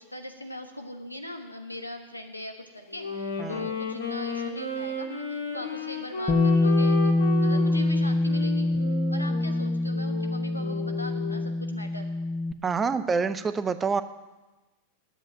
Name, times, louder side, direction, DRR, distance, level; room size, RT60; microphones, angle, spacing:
voice 1, 0.0-8.7 9.1-12.1, left 1 dB, 85° left, 5 dB, 1.2 m, -40 dB
Wind instrument woodwind instrument, 2.9-11.6, left 2 dB, 70° left, 2.1 m, -34 dB
voice 2, 3.4-3.7 12.6-14.0, right 5 dB, 20° right, 12 dB, 0.6 m, -27 dB
Bass guitar, 6.3-12.5, left 2 dB, 25° left, 0.7 m, -25 dB
9.7 x 8.1 x 9.1 m, 1.1 s
figure-of-eight pair, 90°, 0 cm